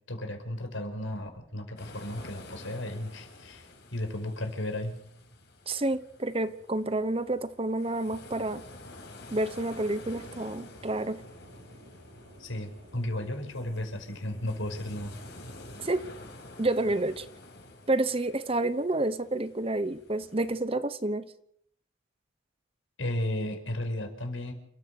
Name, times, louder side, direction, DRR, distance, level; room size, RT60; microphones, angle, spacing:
voice 1, 0.1-5.0 12.4-15.1 23.0-24.5, left 1 dB, 70° left, 5 dB, 5.2 m, -34 dB
sound 1, 1.8-20.6, left 2 dB, 55° left, 5.5 m, -49 dB
voice 2, 5.7-8.6 9.3-11.2 15.8-16.0 16.6-17.3 17.9-21.2, right 2 dB, 25° right, 13 dB, 0.9 m, -29 dB
sound 2, 10.7-15.9, right 1 dB, 80° right, 5.3 m, -56 dB
29.0 x 14.5 x 6.8 m, 0.71 s
head